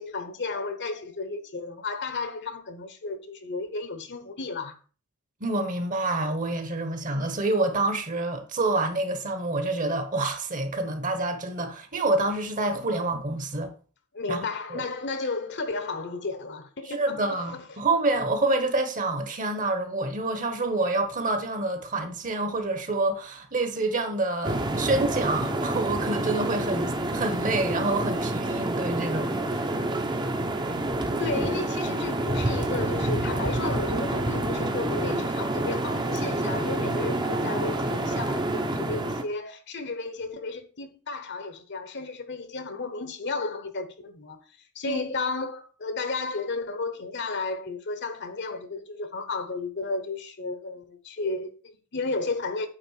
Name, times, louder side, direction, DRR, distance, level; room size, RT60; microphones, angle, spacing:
voice 1, 0.0-4.8 14.1-17.7 30.8-44.4 44.7-52.7, left 3 dB, 50° left, 1.1 m, -33 dB
voice 2, 5.4-13.7 14.3-14.4 14.7-14.8 16.8-29.8 44.9-45.0, right 2 dB, 35° right, 1.3 m, -27 dB
sound 1, 24.4-39.2, right 1 dB, 20° right, 0.8 m, -28 dB
8.8 x 3.8 x 6.5 m
head